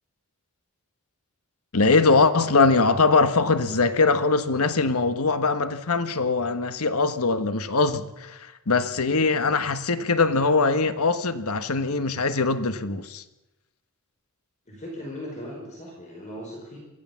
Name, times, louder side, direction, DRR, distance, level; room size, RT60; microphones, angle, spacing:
voice 1, 1.7-13.2, left 3 dB, 85° left, 1.3 m, -22 dB
voice 2, 14.7-16.8, equal, 35° left, 5.1 m, -38 dB
23.5 x 15.5 x 7.3 m
head